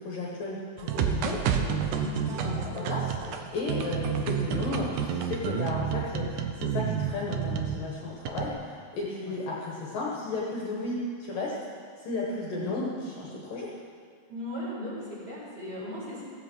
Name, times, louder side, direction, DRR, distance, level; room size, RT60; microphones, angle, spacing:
voice 1, 0.0-2.0 2.4-11.6 12.0-12.9 13.2-13.7, left 3 dB, 60° left, -4 dB, 2.8 m, -34 dB
sound 1, 0.8-7.8 8.2-8.5, right 8 dB, 90° right, 1.7 m, -29 dB
voice 2, 14.3-16.2, left 1 dB, 25° right, -8 dB, 5.4 m, -37 dB
16.0 x 15.0 x 4.6 m, 2.1 s
omnidirectional pair, 4.9 m